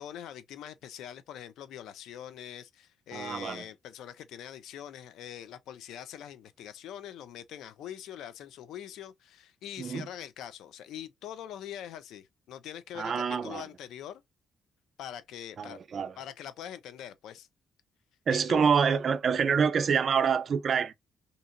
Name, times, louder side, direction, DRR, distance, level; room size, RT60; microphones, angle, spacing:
voice 1, 0.0-14.2 15.0-15.8 16.2-17.5 18.3-18.6, left 10 dB, 80° left, 0.4 m, -43 dB
voice 2, 3.1-3.7 9.8-10.1 12.9-13.6 15.6-16.2 18.3-20.9, right 6 dB, 50° right, 0.4 m, -26 dB
2.7 x 2.6 x 2.5 m
cardioid pair, 90°, 0 cm